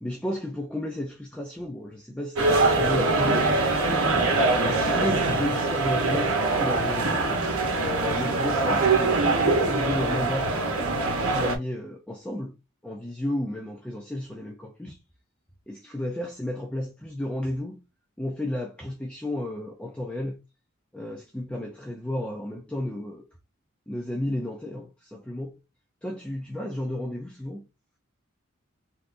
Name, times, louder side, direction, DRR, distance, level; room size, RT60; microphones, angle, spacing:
voice 1, 0.0-3.6 4.1-4.2 4.6-7.2 7.8-12.5 12.8-15.0 15.7-17.8 18.2-20.4 20.9-23.3 23.9-25.6 26.0-27.7, left 1 dB, 5° left, 0.4 m, -33 dB
sound 1, 2.4-11.6, right 3 dB, 90° right, 0.9 m, -23 dB
3.5 x 2.8 x 2.5 m
head